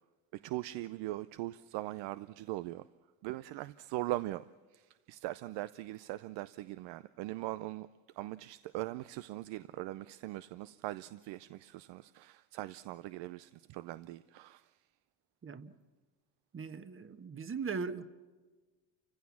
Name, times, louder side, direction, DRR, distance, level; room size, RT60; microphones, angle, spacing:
voice 1, 0.4-2.9 3.2-4.5 4.7-7.9 8.2-14.7, right 16 dB, 70° right, 0.7 m, -40 dB
voice 2, 15.4-15.7 16.5-18.1, right 5 dB, 30° right, 1.3 m, -39 dB
29.5 x 16.0 x 7.2 m
supercardioid pair, 90°, 44 cm